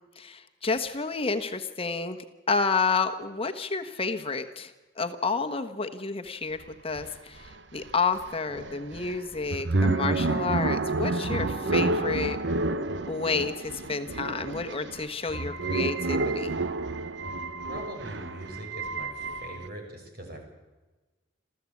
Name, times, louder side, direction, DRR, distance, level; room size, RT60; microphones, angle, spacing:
voice 1, 0.2-2.2 2.5-4.7 5.0-12.4 13.1-16.5, left 4 dB, 30° left, 7 dB, 1.3 m, -30 dB
sound 1, 6.6-6.7 7.0-19.7, right 2 dB, 70° right, 1.0 m, -30 dB
voice 2, 17.7-20.4, right 1 dB, 55° right, 3 dB, 5.9 m, -41 dB
27.5 x 14.5 x 8.5 m, 1.2 s
head